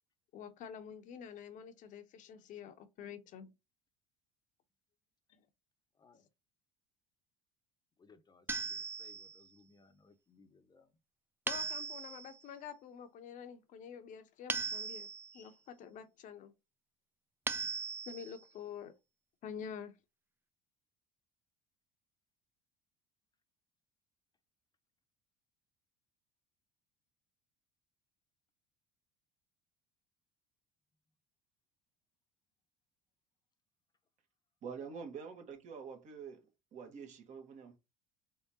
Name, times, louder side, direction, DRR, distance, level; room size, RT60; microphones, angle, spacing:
voice 1, 0.3-3.5 5.3-5.4 6.1-6.2 11.5-15.1 15.3-16.5 18.1-18.9 19.4-19.9, left 7 dB, 55° left, 0.8 m, -48 dB
voice 2, 8.0-10.9, left 4 dB, 25° left, 0.8 m, -64 dB
sound 1, 8.5-9.4 11.5-12.3 14.5-15.4 17.5-18.4, right 4 dB, 15° right, 0.4 m, -38 dB
voice 3, 34.6-37.8, right 6 dB, 50° right, 1.5 m, -47 dB
3.6 x 3.5 x 2.9 m
hypercardioid pair, 75°, 16 cm